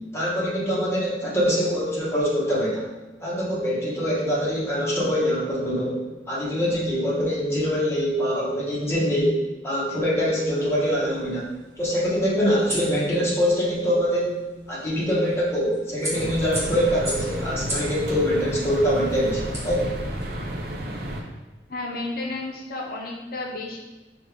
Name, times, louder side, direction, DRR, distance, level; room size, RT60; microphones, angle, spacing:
voice 1, 0.1-2.8 3.2-6.0 6.3-11.5 11.8-14.4 14.7-19.9, equal, 15° left, -7 dB, 1.2 m, -24 dB
sound 1, 10.4-20.4, equal, 15° right, 1.2 m, -38 dB
sound 2, 16.1-21.2, equal, 60° right, 0.6 m, -32 dB
voice 2, 21.7-23.8, left 2 dB, 55° left, -1 dB, 0.7 m, -32 dB
5.2 x 2.4 x 3.4 m, 1.1 s
head